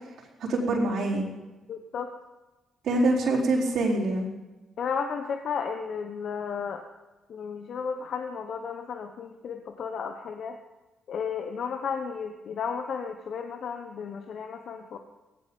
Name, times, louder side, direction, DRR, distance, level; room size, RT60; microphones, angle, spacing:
voice 1, 0.5-1.2 2.8-4.3, right 2 dB, 70° right, -3 dB, 4.3 m, -25 dB
voice 2, 1.7-2.2 4.8-6.8 7.3-10.6 11.1-15.0, left 6 dB, 65° left, 5 dB, 1.1 m, -33 dB
16.5 x 15.5 x 5.4 m, 1.1 s
supercardioid pair, 65°, 0 cm